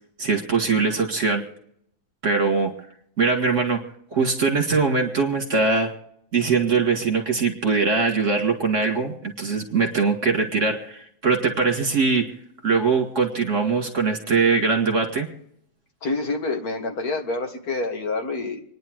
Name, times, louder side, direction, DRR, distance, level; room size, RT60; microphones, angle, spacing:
voice 1, 0.2-1.5 2.2-2.8 3.2-5.9 6.3-12.3 12.6-15.3, right 4 dB, 40° right, 3 dB, 2.3 m, -22 dB
voice 2, 16.0-18.6, left 3 dB, 50° left, 3 dB, 2.2 m, -27 dB
27.5 x 10.5 x 3.1 m, 0.71 s
omnidirectional pair, 2.1 m